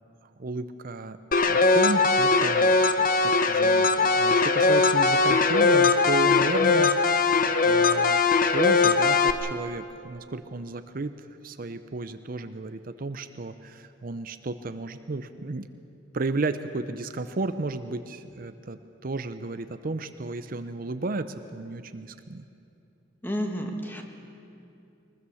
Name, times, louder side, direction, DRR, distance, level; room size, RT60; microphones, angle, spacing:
voice 1, 0.4-1.2 1.5-7.2 7.6-8.2 8.5-11.1 11.4-15.7 16.1-22.4, right 3 dB, 50° right, 10 dB, 0.6 m, -33 dB
sound 1, 1.3-9.3, left 4 dB, 45° left, 0.9 m, -20 dB
voice 2, 23.2-24.0, equal, 10° left, 3 dB, 1.9 m, -30 dB
22.5 x 20.5 x 7.1 m, 2.7 s
head